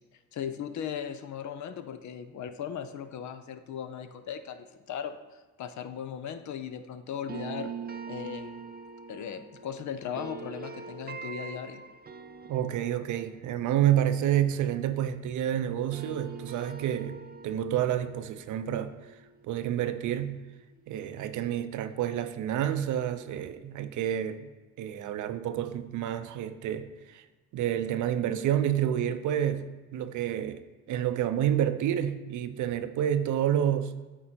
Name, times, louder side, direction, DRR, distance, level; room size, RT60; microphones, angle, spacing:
voice 1, 0.3-7.7 8.1-8.6 9.1-11.8, left 8 dB, 65° left, 10 dB, 0.7 m, -38 dB
sound 1, 7.3-15.4 15.7-20.6, right 5 dB, 30° right, 0.6 m, -44 dB
voice 2, 12.5-18.9 19.4-20.4 20.9-24.5 24.8-27.2 27.5-30.6 30.9-33.9, right 10 dB, 70° right, 10 dB, 0.6 m, -29 dB
8.7 x 3.7 x 4.4 m, 1.2 s
supercardioid pair, 55°, 31 cm